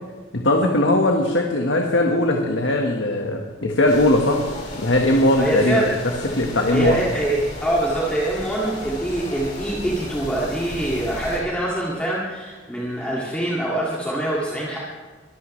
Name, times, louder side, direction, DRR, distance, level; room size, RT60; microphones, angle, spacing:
voice 1, 0.3-4.4 4.7-5.8 6.3-7.0, left 1 dB, 80° left, 1 dB, 1.5 m, -19 dB
sound 1, 3.9-11.4, left 1 dB, 40° left, 4.9 m, -34 dB
voice 2, 5.4-5.9 6.3-6.4 6.7-14.8, right 1 dB, 5° left, -6 dB, 2.3 m, -24 dB
23.0 x 15.0 x 3.3 m, 1.5 s
head